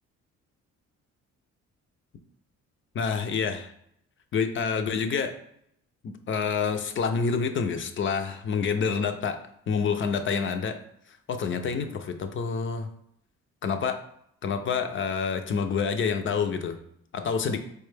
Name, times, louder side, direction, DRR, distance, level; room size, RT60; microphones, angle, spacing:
voice 1, 2.9-3.7 4.3-5.3 6.0-9.4 9.7-10.7 11.3-12.9 13.6-14.0 14.4-16.8 17.1-17.6, left 5 dB, 40° left, 7 dB, 0.5 m, -27 dB
4.3 x 2.2 x 3.3 m, 0.73 s
cardioid pair, 90°, 30 cm